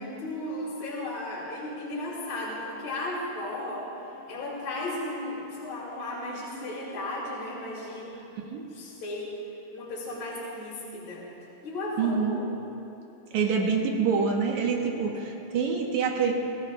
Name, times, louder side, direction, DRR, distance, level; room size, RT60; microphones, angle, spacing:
voice 1, 0.0-3.9 4.3-8.1 8.7-9.4 9.7-11.3 11.6-12.6, left 1 dB, 70° left, -5 dB, 3.9 m, -35 dB
voice 2, 8.3-8.6 12.0-12.4 13.3-16.3, right 5 dB, 75° right, 1 dB, 2.4 m, -26 dB
27.5 x 17.0 x 2.4 m, 2.9 s
omnidirectional pair, 3.4 m